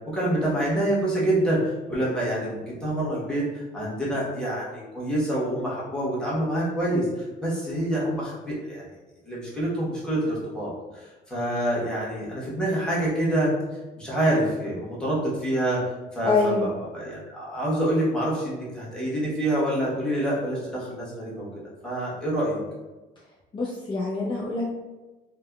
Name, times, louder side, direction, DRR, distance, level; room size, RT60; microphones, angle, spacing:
voice 1, 0.1-8.9 9.2-13.5 14.0-15.8 16.1-21.5 21.8-22.6, right 1 dB, 5° left, -8 dB, 1.1 m, -27 dB
voice 2, 16.2-16.7 23.5-24.6, left 3 dB, 30° left, -5 dB, 0.5 m, -25 dB
3.3 x 2.2 x 2.3 m, 1.1 s
cardioid pair, 110°, 17 cm